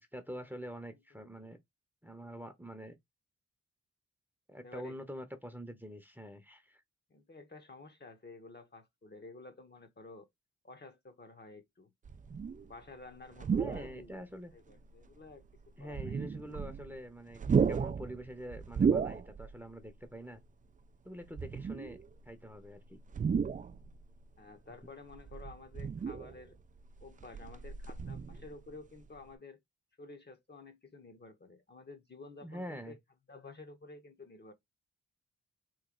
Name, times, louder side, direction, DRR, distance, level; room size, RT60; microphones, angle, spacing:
voice 1, 0.0-1.6 2.0-3.0 4.5-6.8 13.6-14.5 15.8-17.4 17.7-20.4 21.0-22.0 22.3-23.0 32.4-33.0, equal, 5° right, 0.8 m, -45 dB
voice 2, 4.6-5.0 7.1-10.3 10.6-11.9 12.6-14.2 14.5-15.4 15.8-16.2 24.4-26.6 27.0-29.6 30.0-33.0 33.3-34.5, left 3 dB, 35° left, 0.9 m, -52 dB
sound 1, 12.0-12.7 13.3-14.1 14.7-14.8 15.8-17.0 17.3-19.6 19.9-20.0 21.3-22.1 23.1-24.0 25.1-26.5 26.9-28.7 29.0-29.2, right 6 dB, 25° right, 0.4 m, -33 dB
3.2 x 2.6 x 3.7 m
cardioid pair, 50°, 31 cm